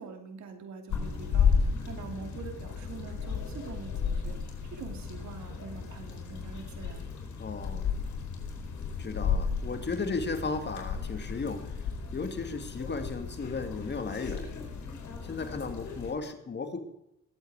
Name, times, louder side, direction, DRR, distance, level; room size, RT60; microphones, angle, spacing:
voice 1, 0.0-4.4 4.7-7.0, right 5 dB, 65° right, 5 dB, 2.8 m, -44 dB
sound 1, 0.9-16.1, left 6 dB, 70° left, 4.4 m, -33 dB
voice 2, 7.4-8.0 9.0-11.8 12.1-14.5 15.2-16.8, left 4 dB, 35° left, 7 dB, 2.3 m, -35 dB
20.0 x 8.3 x 4.9 m, 0.83 s
cardioid pair, 90°, 30 cm